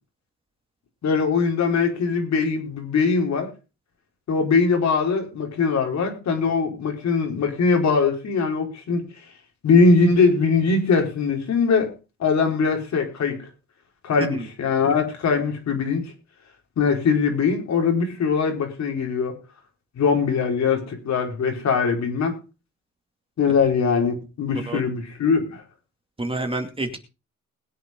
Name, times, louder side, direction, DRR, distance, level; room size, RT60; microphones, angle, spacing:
voice 1, 1.0-3.5 4.3-9.0 9.6-11.9 12.2-13.4 14.0-16.0 16.8-19.4 20.0-22.3 23.4-25.6, left 5 dB, 65° left, 4.7 m, -21 dB
voice 2, 26.2-27.0, right 2 dB, 20° right, 2.5 m, -28 dB
21.0 x 8.1 x 3.8 m
cardioid pair, 95°, 30 cm